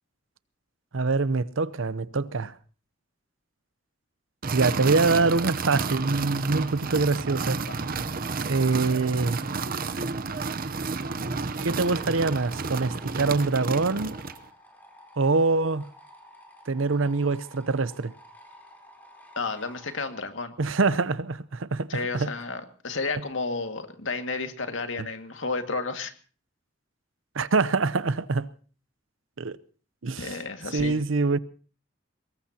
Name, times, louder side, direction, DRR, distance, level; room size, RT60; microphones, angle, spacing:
voice 1, 0.9-2.5 4.5-7.6 8.5-9.4 11.6-14.2 15.2-15.9 16.7-18.1 20.6-22.3 27.3-28.5 29.4-29.6 30.0-30.4 30.7-31.4, right 3 dB, 85° right, 0.8 m, -24 dB
sound 1, 4.4-14.5, right 4 dB, 45° right, 0.8 m, -31 dB
sound 2, 11.5-20.1, left 1 dB, 10° left, 3.7 m, -51 dB
voice 2, 19.4-20.5 21.9-26.1 30.2-31.0, left 3 dB, 80° left, 2.0 m, -32 dB
24.0 x 20.5 x 2.9 m
head